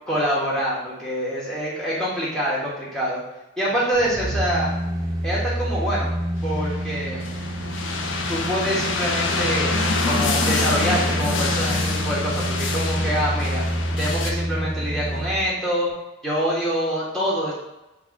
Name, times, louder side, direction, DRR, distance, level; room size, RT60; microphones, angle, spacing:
voice 1, 0.1-3.2 3.6-4.7 5.2-6.1 6.4-7.3 8.3-9.8 10.0-13.6 14.0-15.9 16.2-17.5, equal, 5° left, -6 dB, 1.3 m, -25 dB
sound 1, 3.9-15.5 15.9-16.0, right 1 dB, 20° right, 0.7 m, -27 dB
sound 2, 6.4-14.3, left 3 dB, 70° left, 0.6 m, -26 dB
4.6 x 2.4 x 4.6 m, 0.99 s
head